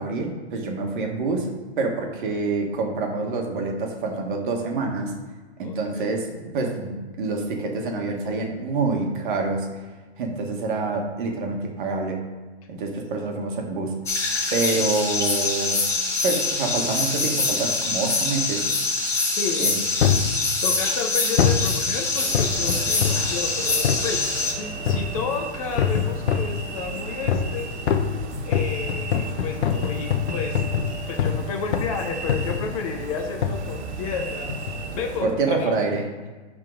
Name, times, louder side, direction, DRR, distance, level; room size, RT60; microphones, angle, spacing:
voice 1, 0.0-1.5 1.8-5.2 5.6-9.7 10.2-12.2 12.7-14.0 14.5-15.9 16.2-18.7 19.6-19.8 35.2-36.1, right 3 dB, 50° right, 2 dB, 1.5 m, -26 dB
voice 2, 5.6-6.1 19.4-19.7 20.6-27.7 28.4-34.5 35.0-35.8, left 5 dB, 30° left, 3 dB, 0.7 m, -31 dB
sound 1, 14.1-24.5, left 3 dB, 10° left, 0.9 m, -24 dB
sound 2, 20.0-20.3 21.4-21.7 22.3-23.3 23.8-24.1 24.9-25.2 25.8-26.6 27.3-27.6 27.9-31.4 31.7-32.0 32.3-32.7 33.4-33.6 34.5-34.8 35.4-35.5, left 8 dB, 70° left, 0.9 m, -23 dB
sound 3, 22.2-35.2, right 3 dB, 75° right, 1.3 m, -35 dB
10.0 x 3.8 x 3.8 m, 1.3 s
hypercardioid pair, 150°, 33 cm